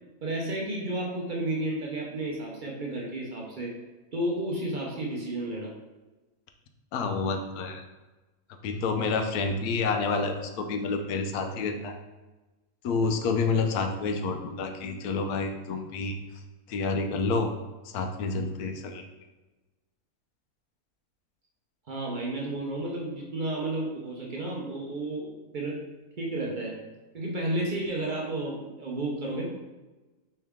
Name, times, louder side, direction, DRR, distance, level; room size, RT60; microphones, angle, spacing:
voice 1, 0.2-3.7 4.1-5.7 21.9-25.8 26.2-26.8 27.1-29.5, right 1 dB, 45° right, -2 dB, 0.7 m, -32 dB
voice 2, 6.9-7.8 8.6-11.9 12.8-16.2 16.7-17.5 17.8-19.0, left 4 dB, 80° left, 5 dB, 1.1 m, -29 dB
4.6 x 3.3 x 3.5 m, 1.2 s
omnidirectional pair, 1.6 m